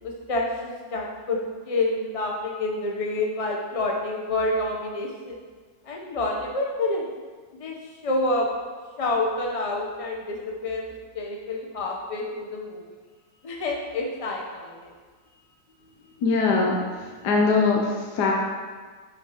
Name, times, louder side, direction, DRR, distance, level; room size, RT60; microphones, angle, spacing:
voice 1, 0.0-1.4 1.6-5.4 5.8-7.1 7.6-8.5 9.0-12.8 13.4-14.9, left 2 dB, 30° left, 0 dB, 0.6 m, -28 dB
voice 2, 16.2-18.3, left 4 dB, 65° left, -1 dB, 1.4 m, -22 dB
12.0 x 5.3 x 3.0 m, 1.5 s
omnidirectional pair, 2.0 m